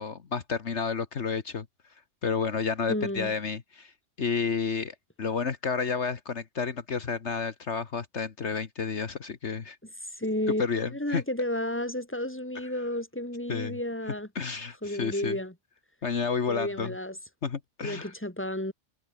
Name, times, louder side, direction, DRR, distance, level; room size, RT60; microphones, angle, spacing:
voice 1, 0.0-1.6 2.2-9.8 10.6-11.2 13.5-13.8 14.3-15.4 16.0-16.9 17.4-18.1, left 5 dB, 65° left, 1.7 m, -31 dB
voice 2, 2.9-3.3 10.2-14.3 14.8-15.5 16.5-17.2 17.8-18.7, left 1 dB, 10° left, 3.6 m, -32 dB
omnidirectional pair, 1.3 m